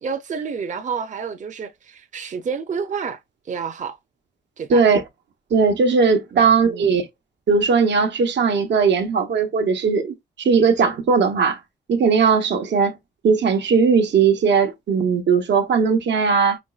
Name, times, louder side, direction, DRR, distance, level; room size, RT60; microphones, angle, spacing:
voice 1, 0.0-3.2 3.5-4.0 4.6-4.8 6.3-6.9, right 6 dB, 45° right, 0.6 m, -29 dB
voice 2, 4.7-5.0 5.5-7.0 7.5-11.6 11.9-12.9 13.2-16.6, right 5 dB, 85° right, 1.0 m, -18 dB
5.2 x 3.0 x 2.3 m
wide cardioid pair, 110°, 18 cm